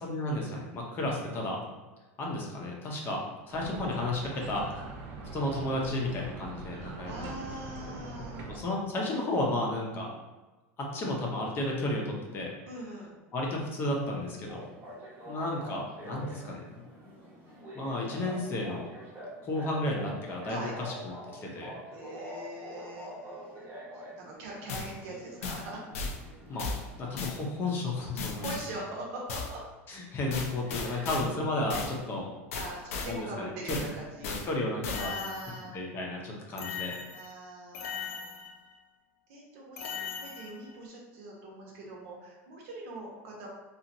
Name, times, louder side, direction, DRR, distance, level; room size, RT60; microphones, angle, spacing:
voice 1, 0.0-1.6 2.2-4.7 5.3-7.3 7.9-8.0 8.5-10.1 10.8-12.5 13.3-14.6 15.3-16.6 17.7-18.9 19.4-21.7 26.5-28.5 29.9-32.3 33.1-33.9 34.2-35.1 35.7-37.0, left 1 dB, 30° left, -1 dB, 0.6 m, -33 dB
sound 1, 3.5-8.6, right 3 dB, 50° right, 0.5 m, -43 dB
voice 2, 6.7-8.4 12.7-13.2 20.4-20.7 21.9-23.7 23.9-25.8 28.4-29.6 30.7-31.1 32.5-34.4 35.0-35.8 37.1-38.3 39.3-43.5, right 1 dB, 65° right, -2 dB, 0.9 m, -42 dB
sound 2, 14.5-28.8, equal, 25° right, 0.8 m, -46 dB
sound 3, 24.7-24.9 25.4-25.7 25.9-26.2 26.6-26.8 27.2-27.4 28.2-28.7 29.3-29.5 30.3-31.3 31.7-31.9 32.5-33.1 33.7-33.9 34.2-34.5 34.8-35.8 36.6-37.3 37.7-38.7 39.8-40.7, left 5 dB, 90° left, 0.5 m, -37 dB
2.9 x 2.4 x 2.6 m, 1.2 s
supercardioid pair, 140°, 7 cm